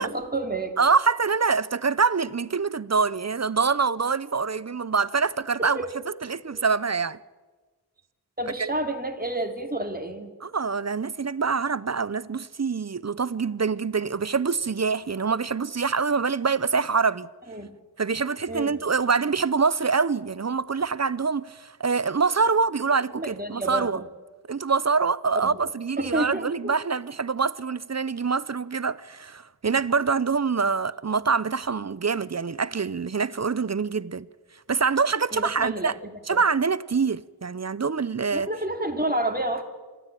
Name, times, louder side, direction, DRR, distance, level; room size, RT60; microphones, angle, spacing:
voice 1, 0.0-0.7 5.6-5.9 6.5-6.6 8.4-10.3 17.5-17.7 18.5-18.8 23.1-24.1 25.3-25.6 26.0-26.7 35.3-35.9 36.3-36.4 38.3-39.6, right 1 dB, 20° right, 2.6 m, -29 dB
voice 2, 0.8-5.8 6.2-7.2 8.6-8.7 10.4-17.3 18.0-24.0 24.5-34.3 34.7-35.9 36.3-38.5, right 5 dB, 40° right, 0.6 m, -25 dB
25.5 x 13.0 x 9.0 m
wide cardioid pair, 45°, 40 cm